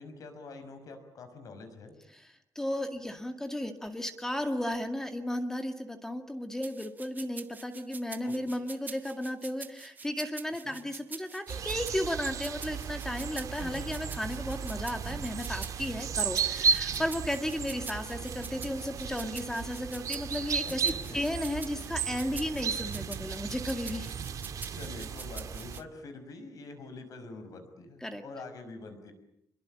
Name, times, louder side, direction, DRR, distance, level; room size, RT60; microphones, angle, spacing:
voice 1, 0.0-1.9 8.2-8.5 10.6-10.8 13.6-14.0 20.4-21.4 24.7-29.1, left 3 dB, 55° left, 8 dB, 5.9 m, -46 dB
voice 2, 2.6-24.1 28.0-28.2, left 1 dB, 5° left, 6 dB, 2.1 m, -34 dB
sound 1, 6.6-25.8, right 5 dB, 25° right, 1.0 m, -46 dB
sound 2, 11.5-25.8, right 6 dB, 55° right, 1.9 m, -34 dB
27.0 x 22.5 x 8.8 m, 0.76 s
wide cardioid pair, 175°, 7 cm